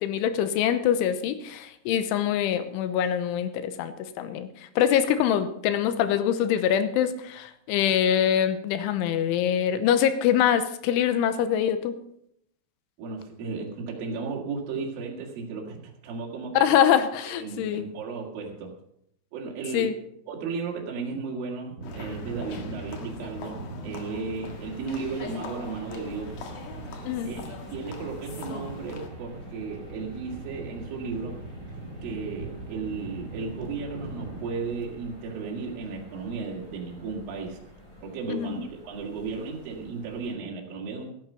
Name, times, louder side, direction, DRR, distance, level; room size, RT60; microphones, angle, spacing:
voice 1, 0.0-11.9 16.5-17.8 19.7-19.9 27.1-27.3 38.3-38.6, left 9 dB, 80° left, 11 dB, 3.2 m, -24 dB
voice 2, 13.0-16.7 17.3-18.7 19.3-20.0 20.3-26.4 27.3-31.4 32.0-37.6 38.0-41.1, right 4 dB, 55° right, -2 dB, 3.3 m, -35 dB
sound 1, 21.8-29.1, left 4 dB, 65° left, 3.4 m, -42 dB
sound 2, 21.8-36.3, right 2 dB, 80° right, 0.8 m, -41 dB
sound 3, 24.4-40.3, equal, 10° left, 3.8 m, -48 dB
14.5 x 9.3 x 5.6 m, 0.73 s
omnidirectional pair, 5.8 m